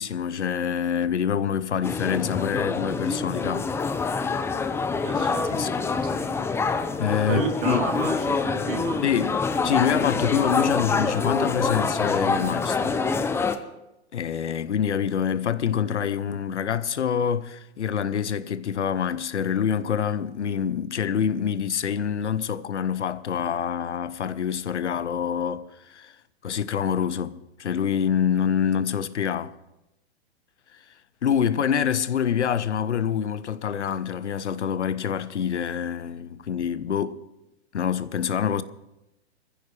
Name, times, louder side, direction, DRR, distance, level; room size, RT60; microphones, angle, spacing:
voice 1, 0.0-3.7 5.5-5.7 7.0-7.8 9.0-9.4 9.6-13.0 14.1-26.1 26.4-29.5 31.2-37.2 37.7-38.6, left 8 dB, 90° left, 0.9 m, -26 dB
sound 1, 1.8-13.6, left 4 dB, 5° left, 0.6 m, -26 dB
voice 2, 5.0-5.5 7.3-9.0, right 5 dB, 55° right, 3.0 m, -30 dB
21.0 x 15.0 x 3.3 m
hypercardioid pair, 125°, 34 cm